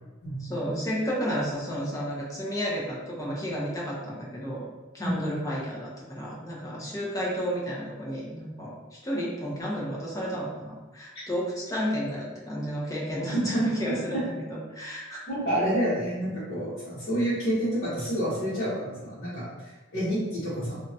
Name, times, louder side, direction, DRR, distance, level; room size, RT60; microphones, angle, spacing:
voice 1, 0.4-4.7 4.9-8.8 9.0-15.2, equal, 15° left, -5 dB, 0.6 m, -32 dB
voice 2, 15.3-20.8, equal, 50° left, -12 dB, 1.0 m, -28 dB
2.8 x 2.2 x 2.6 m, 1.2 s
head